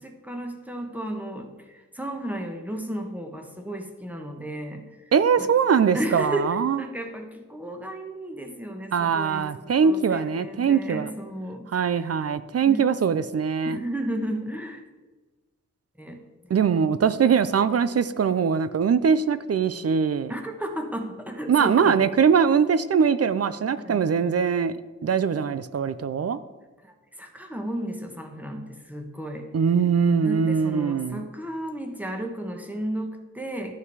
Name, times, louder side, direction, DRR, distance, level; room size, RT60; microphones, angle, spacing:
voice 1, 0.0-5.1 5.4-5.5 5.9-12.1 12.6-12.8 13.6-14.8 16.0-16.5 17.2-17.3 20.3-22.0 23.8-24.0 26.8-29.5 30.2-33.8, right 1 dB, 5° right, 3 dB, 1.2 m, -34 dB
voice 2, 5.1-6.8 8.9-11.1 11.7-13.8 16.5-20.3 21.5-26.4 29.5-31.3, right 6 dB, 55° right, 14 dB, 0.4 m, -22 dB
12.0 x 5.6 x 4.7 m, 1.2 s
wide cardioid pair, 110°, 30 cm